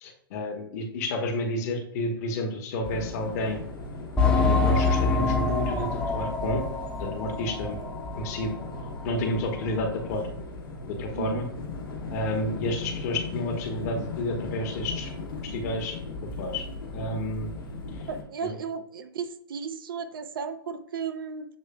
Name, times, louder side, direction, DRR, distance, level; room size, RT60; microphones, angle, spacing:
voice 1, 0.0-3.6 4.3-6.6 7.0-7.8 8.2-8.5 9.0-10.3 10.9-11.5 12.1-15.1 15.4-16.0 16.4-16.6 16.9-17.5 18.4-18.6, left 1 dB, 45° left, 3 dB, 1.0 m, -30 dB
sound 1, 2.8-18.2, left 3 dB, 65° left, 1.2 m, -38 dB
sound 2, 4.2-8.4 8.8-8.9 9.4-9.5, left 3 dB, 10° left, 0.7 m, -25 dB
voice 2, 11.1-11.4 18.1-21.5, right 6 dB, 65° right, 10 dB, 0.5 m, -34 dB
7.2 x 3.2 x 2.2 m, 0.71 s
figure-of-eight pair, 115°, 12 cm